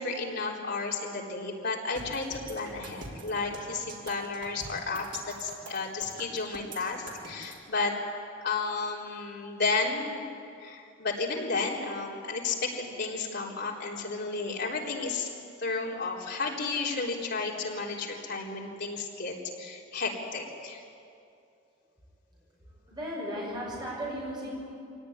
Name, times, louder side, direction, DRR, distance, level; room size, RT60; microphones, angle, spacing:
voice 1, 0.0-7.9 8.4-10.2 10.6-15.3 15.6-20.8, left 4 dB, 55° left, -2 dB, 4.0 m, -32 dB
sound 1, 2.0-7.6, right 2 dB, 65° right, 4.2 m, -44 dB
voice 2, 22.3-24.7, equal, 20° right, -5 dB, 7.5 m, -37 dB
25.0 x 18.0 x 9.7 m, 2.5 s
head